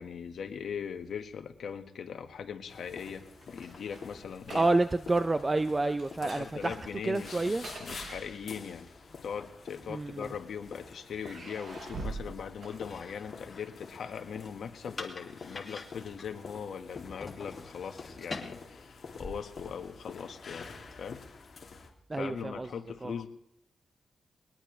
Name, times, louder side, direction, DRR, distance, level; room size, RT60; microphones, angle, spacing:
voice 1, 0.0-4.7 6.2-8.9 9.2-20.7 21.0-21.2 22.1-23.3, left 7 dB, 70° left, 6 dB, 1.5 m, -40 dB
sound 1, 2.7-21.9, left 4 dB, 50° left, 2.6 m, -49 dB
sound 2, 3.4-5.1 5.3-5.6 6.0-8.8 9.7-10.5 11.1-13.4, right 2 dB, 50° right, 7.6 m, -44 dB
voice 2, 4.5-6.8 7.0-7.7 9.9-10.3 22.1-22.7 23.0-23.1, right 2 dB, 20° right, 10 dB, 0.5 m, -28 dB
sound 3, 12.7-20.1, left 3 dB, 30° left, 2.0 m, -47 dB
21.5 x 19.5 x 3.3 m, 0.77 s
wide cardioid pair, 130°, 0 cm